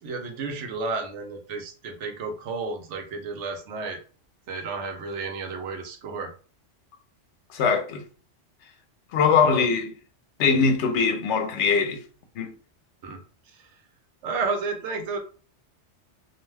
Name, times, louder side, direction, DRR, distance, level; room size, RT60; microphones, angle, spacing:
voice 1, 0.0-4.0 4.5-6.3 9.3-9.7 13.0-13.2 14.2-15.2, right 4 dB, 80° right, 1.0 m, -32 dB
voice 2, 7.5-8.0 9.1-9.9 10.4-12.0 12.4-12.6, left 5 dB, 80° left, 0.9 m, -22 dB
2.6 x 2.1 x 3.3 m
omnidirectional pair, 1.2 m